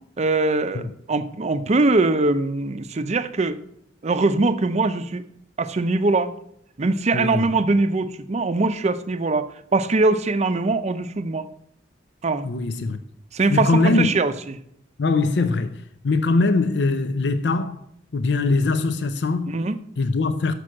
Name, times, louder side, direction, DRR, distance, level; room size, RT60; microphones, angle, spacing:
voice 1, 0.2-3.6 4.0-5.2 5.6-6.3 6.8-11.5 12.2-12.5 13.3-14.6 19.5-19.8, right 3 dB, 40° right, 0.5 m, -22 dB
voice 2, 7.1-7.5 12.4-13.0 13.5-14.1 15.0-17.8 18.1-19.5 20.0-20.5, left 3 dB, 70° left, 0.5 m, -22 dB
6.7 x 6.0 x 6.3 m
head